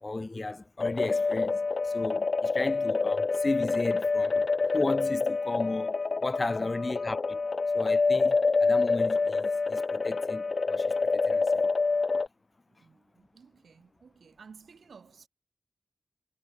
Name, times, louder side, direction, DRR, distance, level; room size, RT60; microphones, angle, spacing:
voice 1, 0.0-4.4 4.7-7.4 7.7-11.7, left 2 dB, 35° left, 1.5 m, -35 dB
sound 1, 0.8-12.3, left 4 dB, 55° left, 0.4 m, -27 dB
voice 2, 6.5-7.0 12.7-15.3, right 5 dB, 80° right, 6.0 m, -54 dB
cardioid pair, 60°, 0 cm